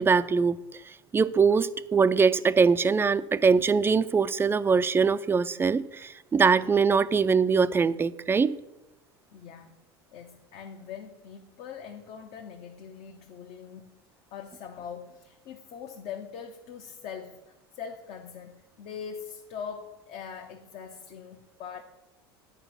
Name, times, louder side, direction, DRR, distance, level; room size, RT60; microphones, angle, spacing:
voice 1, 0.0-8.6, right 5 dB, 15° right, 0.4 m, -23 dB
voice 2, 9.3-9.8 10.1-13.9 14.3-21.8, left 7 dB, 55° left, 0.9 m, -42 dB
9.7 x 5.1 x 5.7 m
hypercardioid pair, 75°, 13 cm